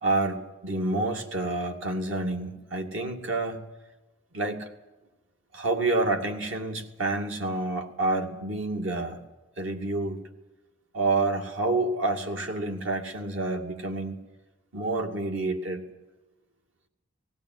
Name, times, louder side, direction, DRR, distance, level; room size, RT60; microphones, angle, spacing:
voice 1, 0.0-3.6 4.3-4.7 5.5-9.2 9.6-10.2 10.9-14.2 14.7-15.9, right 2 dB, 80° right, 3 dB, 2.5 m, -28 dB
19.5 x 16.0 x 9.5 m, 1.1 s
head